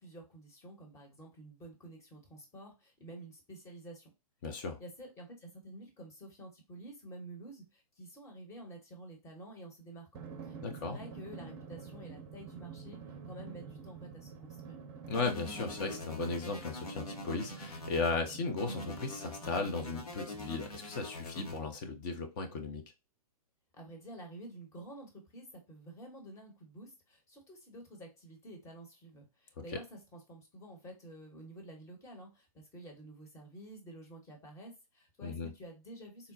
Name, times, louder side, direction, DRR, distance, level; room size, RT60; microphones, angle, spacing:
voice 1, 0.0-4.1 4.8-14.8 23.8-36.3, right 1 dB, 15° left, 1.0 m, -50 dB
voice 2, 4.4-4.8 10.6-11.0 15.1-22.8 35.2-35.5, left 4 dB, 30° left, 0.6 m, -36 dB
Drum, 10.1-21.2, right 6 dB, 30° right, 0.6 m, -49 dB
sound 1, 15.1-18.1 18.6-21.6, left 2 dB, 70° left, 1.0 m, -44 dB
3.9 x 2.1 x 2.5 m
figure-of-eight pair, 120°, 20 cm